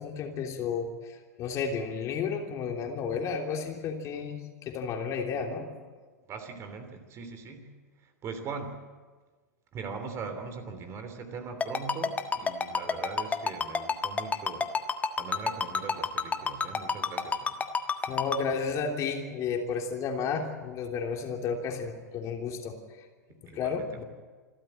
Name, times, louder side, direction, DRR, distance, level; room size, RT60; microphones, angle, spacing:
voice 1, 0.0-5.7 18.1-23.0 23.5-24.0, left 5 dB, 35° left, 2 dB, 3.2 m, -32 dB
voice 2, 6.3-7.7 8.0-8.7 9.7-14.7 15.2-17.6 23.3-24.0, right 5 dB, 30° right, 7 dB, 3.1 m, -40 dB
Ringtone, 11.6-18.4, left 5 dB, 15° left, 1.5 m, -27 dB
26.5 x 13.5 x 8.9 m, 1.4 s
figure-of-eight pair, 95°, 9 cm